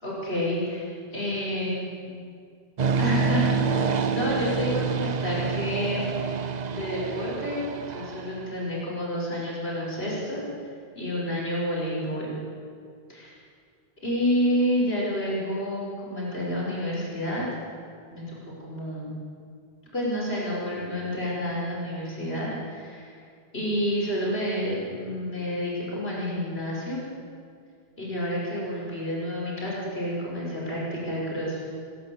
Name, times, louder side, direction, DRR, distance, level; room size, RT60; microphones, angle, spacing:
voice 1, 0.0-2.2 3.0-6.1 6.7-7.6 7.9-10.4 10.9-12.4 13.1-13.3 14.0-17.6 18.1-19.1 19.9-23.1 23.5-27.0 28.0-31.6, equal, 70° left, -5 dB, 6.2 m, -29 dB
sound 1, 2.8-8.6, right 5 dB, 45° right, 0.8 m, -27 dB
28.0 x 13.0 x 8.0 m, 2.2 s
omnidirectional pair, 1.1 m